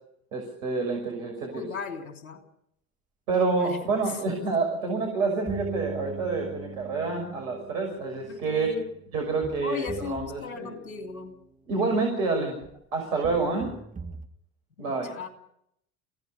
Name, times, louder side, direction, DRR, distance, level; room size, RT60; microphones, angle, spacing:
voice 1, 0.3-1.6 3.3-8.7 9.1-10.7 11.7-12.6 12.9-13.7 14.8-15.1, right 4 dB, 70° right, 1 dB, 6.1 m, -28 dB
voice 2, 1.5-2.4 3.4-4.2 8.3-8.9 9.6-11.4 14.8-15.3, left 5 dB, 80° left, 5 dB, 3.3 m, -37 dB
sound 1, 5.5-11.4 12.6-12.7 13.2-14.3, right 5 dB, 20° right, 2.0 m, -41 dB
29.5 x 16.5 x 5.7 m, 0.75 s
figure-of-eight pair, 65°, 41 cm